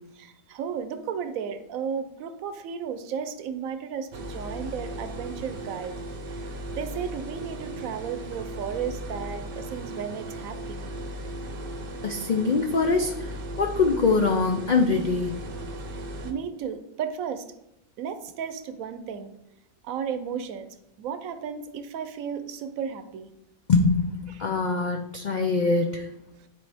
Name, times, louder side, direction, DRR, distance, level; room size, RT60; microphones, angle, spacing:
voice 1, 0.1-5.9 6.7-10.9 15.9-17.5 18.0-19.3 19.8-23.3, right 7 dB, 75° right, 10 dB, 1.0 m, -34 dB
sound 1, 4.1-16.3, right 1 dB, 50° right, 0.8 m, -37 dB
voice 2, 12.0-13.3 13.6-15.3 23.7-26.1, left 4 dB, 85° left, 4 dB, 0.4 m, -23 dB
10.5 x 4.2 x 3.4 m, 0.85 s
omnidirectional pair, 1.5 m